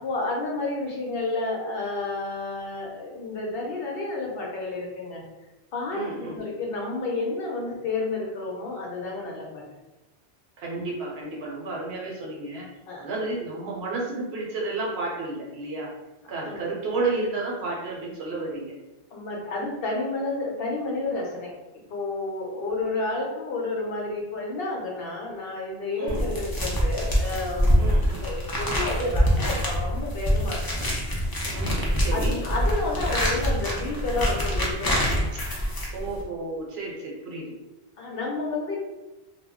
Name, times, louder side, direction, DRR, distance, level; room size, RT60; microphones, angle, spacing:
voice 1, 0.0-5.2 5.7-9.6 12.9-13.1 16.2-16.7 19.1-21.5 21.9-27.8 28.2-30.6 32.1-35.1 38.0-38.8, left 3 dB, 65° left, -2 dB, 0.8 m, -30 dB
voice 2, 5.9-6.4 10.6-12.6 13.0-15.9 16.3-18.8 26.0-26.2 27.8-28.3 31.5-32.3 35.9-37.5, right 3 dB, 70° right, -3 dB, 0.9 m, -31 dB
sound 1, 26.1-36.2, equal, 35° left, 0.3 m, -25 dB
2.2 x 2.0 x 3.5 m, 1.1 s
omnidirectional pair, 1.1 m